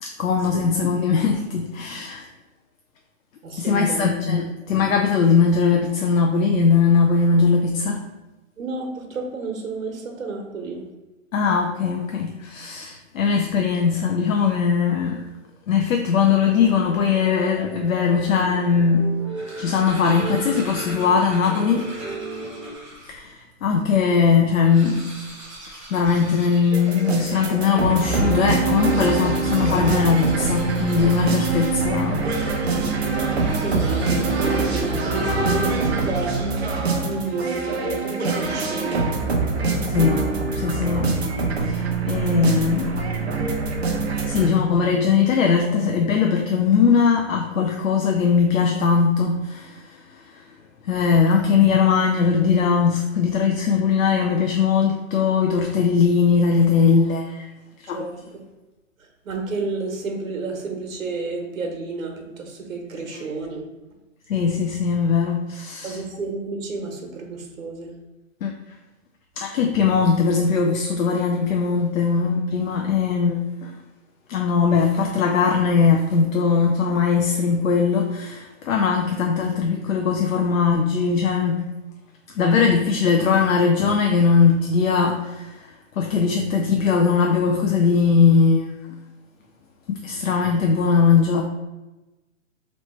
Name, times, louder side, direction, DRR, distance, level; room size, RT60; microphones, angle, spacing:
voice 1, 0.0-2.3 3.6-8.0 11.3-15.3 15.7-19.1 19.6-21.9 23.1-25.0 25.9-32.8 39.8-40.2 40.5-41.1 41.6-43.0 44.2-50.0 50.3-50.4 50.8-57.5 57.8-58.1 63.1-63.2 64.3-66.0 68.4-68.5 69.4-73.7 74.3-81.6 82.3-85.7 86.0-88.7 89.9-91.4, left 5 dB, 80° left, 2 dB, 0.6 m, -20 dB
voice 2, 3.4-4.1 8.6-10.8 33.6-36.5 37.0-39.0 57.9-58.4 59.2-63.6 65.8-67.9, right 3 dB, 80° right, 2 dB, 1.2 m, -30 dB
sound 1, 16.4-22.7, right 2 dB, 25° left, 1.1 m, -35 dB
sound 2, 19.2-23.2 23.8-23.9 24.1-24.2 24.5-27.6 28.6-32.0 33.3-36.0, right 1 dB, 25° right, 0.8 m, -41 dB
sound 3, 26.7-44.5, right 3 dB, 50° right, 0.7 m, -24 dB
3.2 x 3.1 x 4.2 m, 1.1 s
hypercardioid pair, 180°, 40 cm